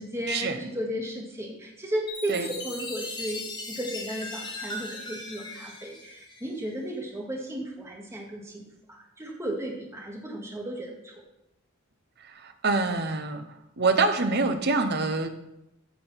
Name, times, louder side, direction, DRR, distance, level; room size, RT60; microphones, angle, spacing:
voice 1, 0.0-3.4 3.7-11.1, equal, 15° right, -1 dB, 2.2 m, -34 dB
Chime, 2.1-6.8, left 2 dB, 20° left, 1.9 m, -38 dB
voice 2, 12.2-13.4 13.8-15.3, right 3 dB, 50° right, 8 dB, 1.1 m, -25 dB
14.5 x 5.1 x 5.8 m, 0.86 s
head